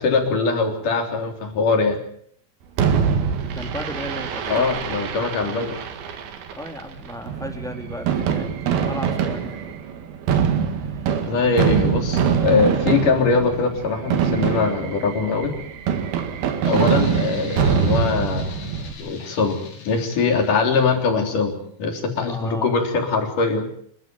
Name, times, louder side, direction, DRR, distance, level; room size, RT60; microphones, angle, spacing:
voice 1, 0.0-2.0 4.5-5.8 11.2-15.5 16.6-18.6 19.0-19.6 19.8-23.7, left 4 dB, 60° left, 4 dB, 5.0 m, -22 dB
Fireworks, 2.8-18.9, right 7 dB, 75° right, 3.7 m, -24 dB
voice 2, 3.4-4.7 6.5-9.8 10.9-11.0 22.3-22.7, equal, ahead, 4 dB, 2.7 m, -35 dB
sound 1, 16.6-21.1, left 4 dB, 80° left, 5.4 m, -37 dB
28.0 x 13.0 x 9.3 m, 0.66 s
omnidirectional pair, 4.4 m